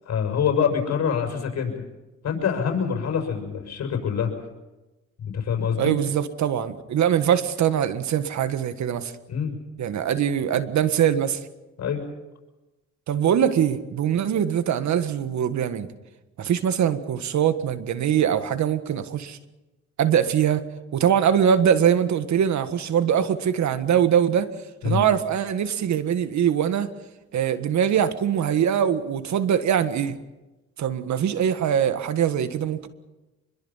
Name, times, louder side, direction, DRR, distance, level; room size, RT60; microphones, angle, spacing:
voice 1, 0.0-1.7 2.2-4.3 5.2-5.9 9.3-9.6 11.8-12.0 24.8-25.0, left 7 dB, 60° left, 3 dB, 6.3 m, -25 dB
voice 2, 5.8-9.1 9.8-11.4 13.1-15.9 16.4-19.4 20.0-20.6 20.9-24.5 24.8-26.9 27.3-30.2 30.8-32.9, right 9 dB, 65° right, 11 dB, 1.6 m, -22 dB
25.5 x 22.0 x 5.7 m, 1.1 s
cardioid pair, 90°, 30 cm